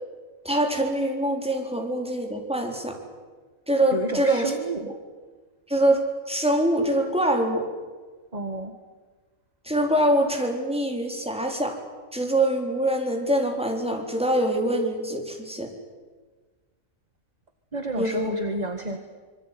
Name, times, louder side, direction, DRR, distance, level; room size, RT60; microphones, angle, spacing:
voice 1, 0.4-3.0 3.7-4.5 5.7-6.0 6.3-7.7 9.7-11.8 12.1-15.7 18.0-18.3, right 1 dB, 5° right, 2 dB, 3.9 m, -24 dB
voice 2, 3.9-4.9 8.3-8.7 17.7-19.0, right 2 dB, 30° right, 7 dB, 1.7 m, -30 dB
26.0 x 22.5 x 9.3 m, 1.4 s
omnidirectional pair, 1.5 m